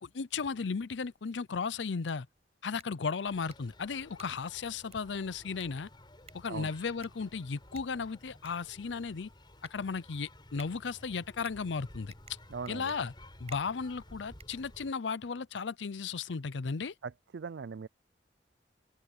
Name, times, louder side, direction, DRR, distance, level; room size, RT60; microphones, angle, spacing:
voice 1, 0.0-2.3 2.6-5.9 6.3-9.3 9.7-12.1 12.7-13.1 13.4-16.9, left 5 dB, 80° left, 0.6 m, -35 dB
sound 1, 2.7-15.2, right 6 dB, 35° right, 7.1 m, -59 dB
sound 2, 3.2-14.9, left 1 dB, 25° left, 4.0 m, -55 dB
voice 2, 12.5-12.9 17.0-17.9, right 5 dB, 70° right, 0.4 m, -40 dB
open air
head